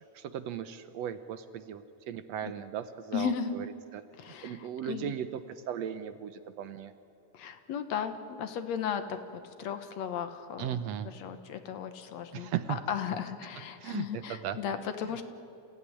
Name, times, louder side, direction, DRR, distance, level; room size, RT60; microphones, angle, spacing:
voice 1, 0.1-3.7 3.9-6.9 10.6-11.1 12.3-12.8 13.8-14.6 15.0-15.2, right 10 dB, 70° right, 11 dB, 1.8 m, -37 dB
voice 2, 3.1-3.6 4.2-5.1 7.3-15.2, left 8 dB, 65° left, 9 dB, 2.3 m, -36 dB
27.5 x 16.0 x 9.9 m, 2.7 s
omnidirectional pair, 3.4 m